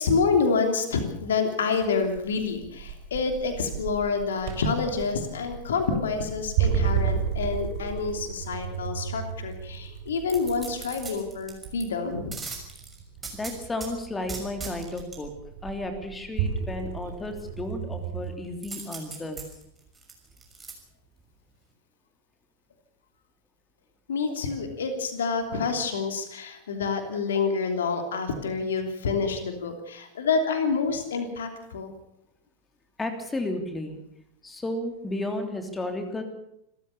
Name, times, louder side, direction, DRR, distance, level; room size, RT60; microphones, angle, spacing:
voice 1, 0.0-12.4 24.1-31.9, left 4 dB, 65° left, 6 dB, 3.1 m, -27 dB
sound 1, 1.7-18.3, right 7 dB, 45° right, 3.8 m, -33 dB
sound 2, 10.3-11.8 12.3-13.9 14.3-15.2 18.6-20.7 21.2-21.3, right 4 dB, 15° right, 6.4 m, -39 dB
voice 2, 13.3-15.3 15.6-19.4 33.0-34.0 34.4-36.2, left 1 dB, 10° left, 6 dB, 3.2 m, -33 dB
28.0 x 14.0 x 7.1 m, 0.78 s
figure-of-eight pair, 90°, 0 cm